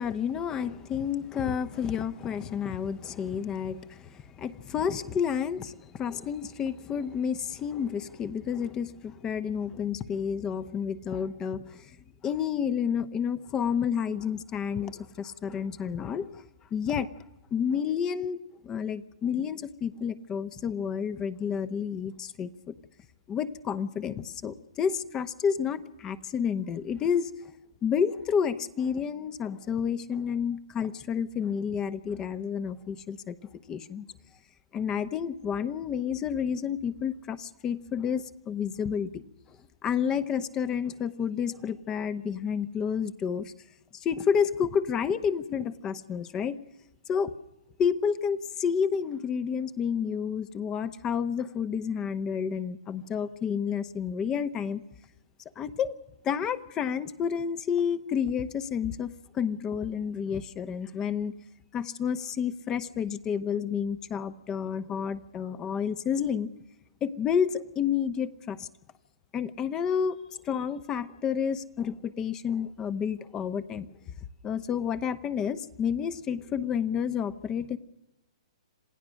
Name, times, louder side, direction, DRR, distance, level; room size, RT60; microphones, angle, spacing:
voice 1, 0.0-12.0 12.2-17.1 17.5-18.4 18.6-22.7 23.3-27.3 27.8-33.4 33.7-34.1 34.7-39.2 39.8-43.5 43.9-46.6 47.1-47.3 47.8-54.8 55.6-56.0 56.2-61.3 61.7-66.5 67.0-68.7 69.3-70.2 70.4-73.9 74.4-77.8, left 7 dB, 20° left, 14 dB, 0.9 m, -30 dB
27.0 x 16.0 x 6.4 m, 0.95 s
hypercardioid pair, 135°, 3 cm